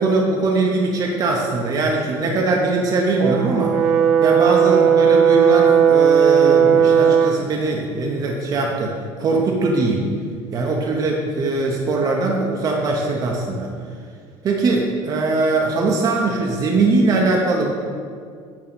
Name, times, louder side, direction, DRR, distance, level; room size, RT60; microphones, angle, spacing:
voice 1, 0.0-3.7 4.2-10.1 10.5-13.7 14.4-17.7, right 3 dB, 35° right, 0 dB, 0.7 m, -21 dB
Brass instrument, 3.2-7.4, right 7 dB, 70° right, 0.6 m, -15 dB
8.7 x 2.9 x 5.9 m, 2.1 s
cardioid pair, 150°, 12 cm